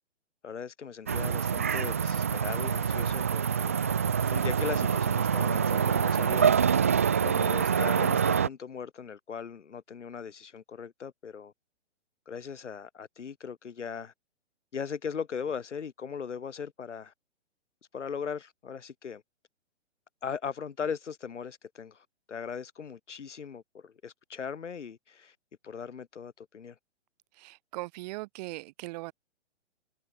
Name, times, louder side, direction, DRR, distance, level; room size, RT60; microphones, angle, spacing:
voice 1, 0.4-3.7 4.3-6.5 7.2-11.5 12.3-14.1 14.7-17.1 17.9-19.2 20.2-25.3 25.6-26.7, left 6 dB, 80° left, 7.7 m, -39 dB
sound 1, 1.1-8.5, right 7 dB, 15° right, 0.3 m, -26 dB
voice 2, 27.3-29.1, right 21 dB, 35° right, 7.0 m, -39 dB
hypercardioid pair, 150°, 35 cm